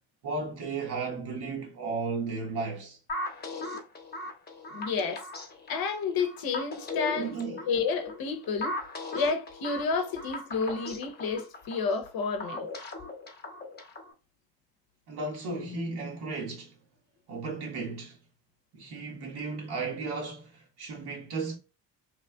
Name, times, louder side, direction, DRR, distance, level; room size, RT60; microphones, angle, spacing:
voice 1, 0.2-3.0 7.2-7.7 15.1-16.7 17.3-18.2 18.7-21.6, right 4 dB, 60° right, 1.4 m, -34 dB
sound 1, 3.1-14.1, left 2 dB, 25° left, 0.9 m, -38 dB
voice 2, 4.7-5.2 5.7-7.4 7.7-8.8 9.1-12.6, left 5 dB, 55° left, 0.8 m, -30 dB
3.1 x 2.4 x 2.3 m
supercardioid pair, 80°, 43 cm